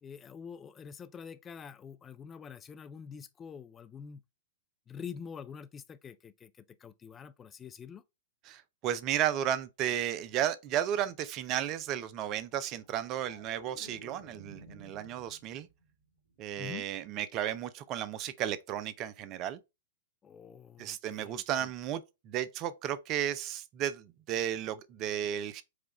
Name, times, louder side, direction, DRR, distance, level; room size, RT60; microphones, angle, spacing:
voice 1, 0.0-4.2 4.9-8.0 16.6-16.9 20.2-21.7, left 7 dB, 20° left, 0.4 m, -46 dB
voice 2, 8.5-15.7 16.4-19.6 20.8-25.6, right 11 dB, 35° right, 0.5 m, -34 dB
sound 1, 12.8-15.9 16.3-16.6, equal, 70° left, 2.1 m, -53 dB
4.9 x 2.4 x 4.2 m
hypercardioid pair, 110°, 0 cm